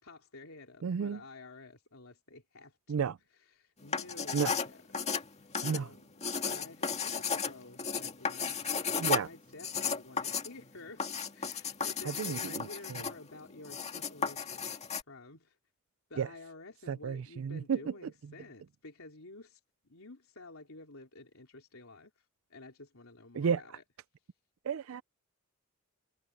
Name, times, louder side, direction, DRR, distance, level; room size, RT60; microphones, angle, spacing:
voice 1, 0.0-2.8 3.5-4.8 5.6-6.0 6.4-8.8 9.1-11.1 11.3-14.7 15.1-15.6 16.1-19.6 19.9-22.1 22.5-23.8, left 2 dB, 80° left, 3.4 m, -51 dB
voice 2, 0.8-1.2 2.9-3.2 4.3-4.5 5.6-5.9 9.0-9.3 12.0-13.0 16.2-16.3 16.9-17.9 23.3-23.8 24.6-25.0, right 6 dB, 70° right, 0.4 m, -32 dB
sound 1, 3.8-15.0, left 6 dB, 30° left, 2.1 m, -34 dB
head